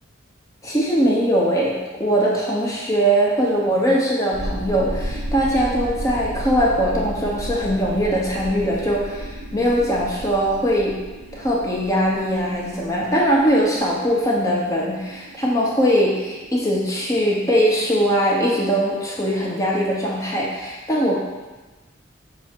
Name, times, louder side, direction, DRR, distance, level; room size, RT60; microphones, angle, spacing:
voice 1, 0.6-10.9 11.3-21.2, equal, 15° left, -5 dB, 0.7 m, -21 dB
sound 1, 4.3-17.6, equal, 55° right, 0.7 m, -34 dB
5.9 x 2.0 x 4.3 m, 1.2 s
head